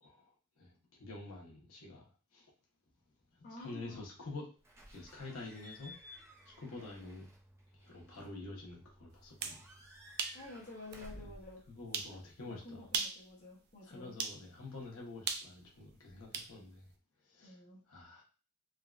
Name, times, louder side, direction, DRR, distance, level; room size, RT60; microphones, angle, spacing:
voice 1, 0.0-0.7 1.0-2.5 3.3-4.5 4.8-5.9 6.4-7.3 7.7-9.7 11.1-11.3 11.7-12.9 13.8-16.9 17.2-17.6 17.9-18.2, left 2 dB, 70° left, -1 dB, 1.0 m, -48 dB
voice 2, 3.4-4.0 10.3-11.6 12.1-12.2 12.4-14.2 17.4-17.8, left 2 dB, 40° left, -4 dB, 0.8 m, -50 dB
Slam / Squeak / Alarm, 4.6-12.6, equal, 15° right, 0.7 m, -56 dB
sound 1, 9.2-9.6 10.2-10.4 10.9-11.0 11.9-12.2 12.8-13.2 14.2-14.4 15.3-16.5, right 5 dB, 45° right, 0.4 m, -37 dB
3.5 x 2.3 x 2.4 m, 0.36 s
head